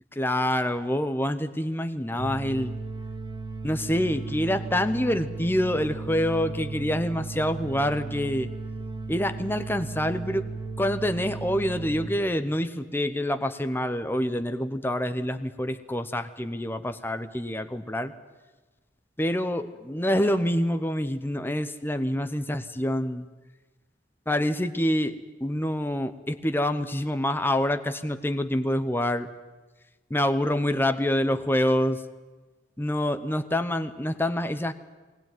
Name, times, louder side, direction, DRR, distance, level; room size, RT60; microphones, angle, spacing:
voice 1, 0.2-2.7 3.6-8.5 9.1-10.4 10.8-18.1 19.2-23.2 24.3-29.3 30.1-32.0 32.8-34.7, left 1 dB, 10° left, 9 dB, 0.8 m, -26 dB
sound 1, 2.2-12.1, right 3 dB, 25° right, 1.3 m, -35 dB
21.5 x 19.5 x 9.2 m, 1.2 s
head